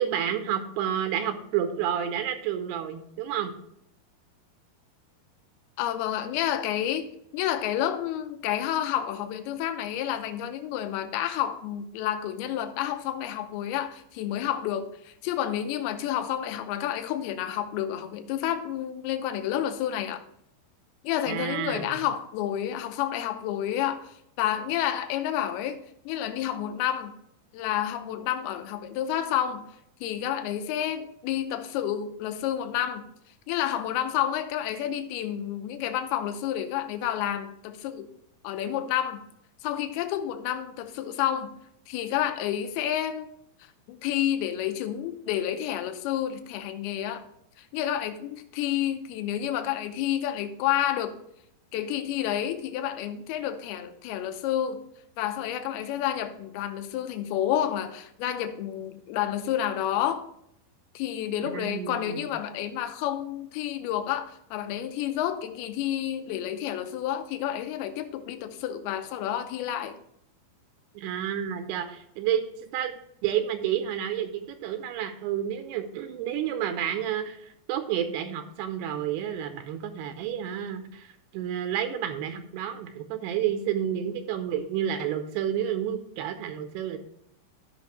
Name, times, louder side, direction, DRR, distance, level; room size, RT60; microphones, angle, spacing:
voice 1, 0.0-3.5 21.3-22.0 61.5-62.2 71.0-72.4 72.7-73.0 73.2-87.0, right 9 dB, 85° right, 7 dB, 2.8 m, -30 dB
voice 2, 5.8-7.1 7.3-20.2 21.0-27.1 27.5-29.6 30.0-33.1 33.5-38.1 38.4-39.2 39.6-41.5 41.9-43.3 43.6-47.2 47.6-51.2 51.7-54.8 55.2-60.3 60.9-70.0, left 11 dB, 80° left, 8 dB, 2.6 m, -30 dB
14.0 x 6.0 x 3.2 m, 0.73 s
omnidirectional pair, 4.8 m